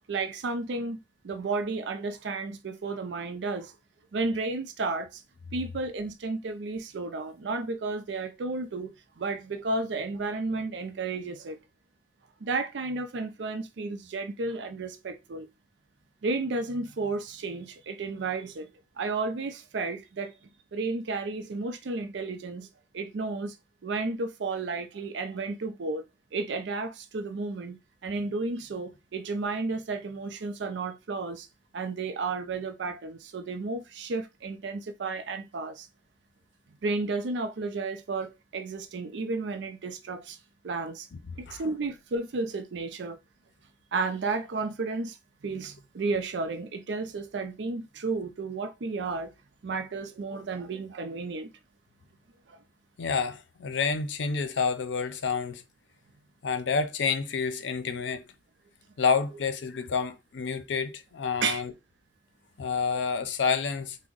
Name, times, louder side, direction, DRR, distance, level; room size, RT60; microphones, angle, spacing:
voice 1, 0.1-3.7 4.1-5.2 5.5-8.9 9.2-11.6 12.4-15.5 16.2-18.7 19.0-20.3 20.7-22.7 22.9-23.6 23.8-26.0 26.3-31.5 31.7-35.9 36.8-40.4 40.6-41.1 41.4-43.2 43.9-45.2 45.4-49.3 49.6-51.5 52.5-52.6 61.4-61.6, right 3 dB, 70° right, 0.4 m, -32 dB
voice 2, 53.0-55.6 56.4-58.3 59.0-61.7 62.6-64.0, left 5 dB, 80° left, 0.5 m, -29 dB
3.5 x 2.1 x 3.7 m
head